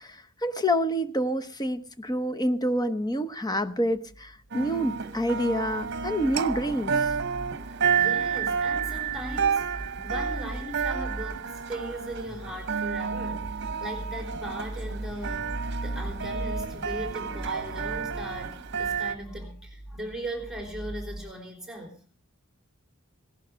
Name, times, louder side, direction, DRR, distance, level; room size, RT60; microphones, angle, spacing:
voice 1, 0.0-7.1, equal, 20° left, 12 dB, 1.0 m, -28 dB
sound 1, 4.1-21.2, right 1 dB, 75° left, 1.6 m, -40 dB
sound 2, 4.5-19.2, right 6 dB, 55° right, 1.0 m, -30 dB
voice 2, 7.9-15.5 15.8-22.0, right 1 dB, 5° right, 3 dB, 3.5 m, -38 dB
17.5 x 11.5 x 5.2 m, 0.40 s
head